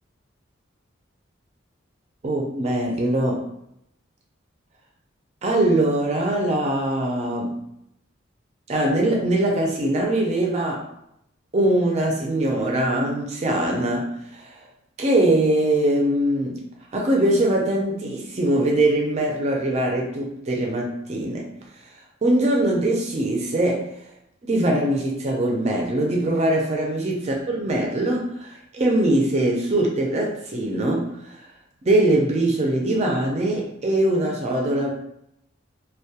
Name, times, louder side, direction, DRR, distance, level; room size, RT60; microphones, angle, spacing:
voice 1, 2.2-3.4 5.4-7.6 8.7-10.9 11.5-14.6 15.0-16.6 16.9-21.5 22.2-23.8 24.4-31.3 31.9-34.9, right 1 dB, 35° right, 0 dB, 0.4 m, -22 dB
2.2 x 2.2 x 2.7 m, 0.77 s
head